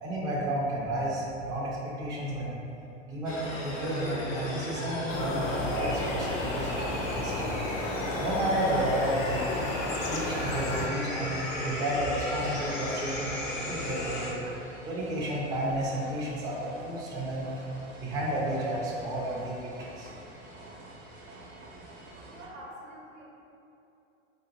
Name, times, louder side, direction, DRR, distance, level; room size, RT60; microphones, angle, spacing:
voice 1, 0.0-2.6 3.1-7.6 7.9-9.5 10.1-13.3 13.6-14.4 14.8-17.5 18.0-20.1, right 1 dB, 10° right, -6 dB, 0.3 m, -32 dB
sound 1, 3.2-14.3, left 1 dB, 80° left, 1.0 m, -35 dB
sound 2, 5.1-10.9, left 3 dB, 50° left, 0.5 m, -34 dB
sound 3, 5.5-22.5, right 2 dB, 60° right, 0.8 m, -48 dB
voice 2, 22.3-23.2, right 1 dB, 90° right, -4 dB, 0.8 m, -46 dB
2.8 x 2.2 x 3.7 m, 2.8 s
figure-of-eight pair, 90°, 38 cm